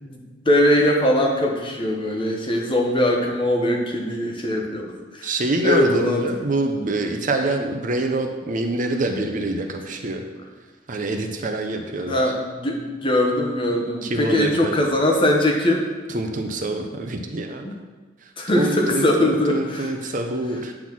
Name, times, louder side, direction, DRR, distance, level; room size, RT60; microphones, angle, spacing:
voice 1, 0.0-5.3 5.6-6.4 12.0-15.9 16.7-17.0 17.6-17.7 18.4-19.9, left 1 dB, 25° left, 1 dB, 1.0 m, -21 dB
voice 2, 5.2-10.2 10.9-12.3 14.0-14.9 16.1-17.7 18.6-20.7, right 2 dB, 40° right, 4 dB, 0.6 m, -25 dB
8.7 x 4.1 x 6.0 m, 1.4 s
head